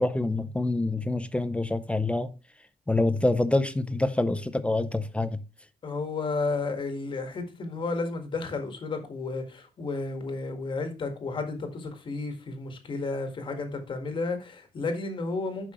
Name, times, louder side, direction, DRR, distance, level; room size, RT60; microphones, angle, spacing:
voice 1, 0.0-2.3 2.9-5.4, left 2 dB, 10° left, 0.5 m, -26 dB
voice 2, 5.8-15.7, left 3 dB, 30° left, 1.6 m, -32 dB
10.0 x 5.8 x 3.0 m
cardioid pair, 180°, 16 cm